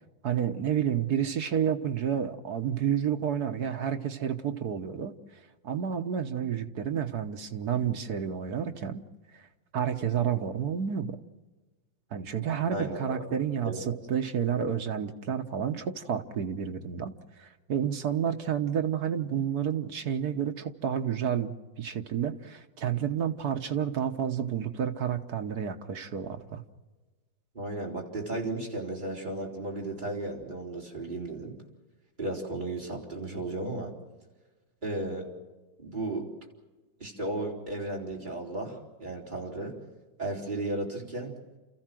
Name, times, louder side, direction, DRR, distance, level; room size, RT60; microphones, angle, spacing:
voice 1, 0.2-5.1 5.6-9.0 9.3-9.4 9.7-11.2 12.1-13.7 14.1-17.1 17.4-26.6, right 8 dB, 60° right, 6 dB, 1.6 m, -30 dB
voice 2, 12.7-13.4 13.6-13.9 27.5-31.6 32.2-33.9 34.8-35.3 35.8-36.3 37.0-39.8 40.2-41.3, right 2 dB, 25° right, -1 dB, 4.2 m, -34 dB
30.0 x 14.5 x 7.6 m, 1.2 s
omnidirectional pair, 2.0 m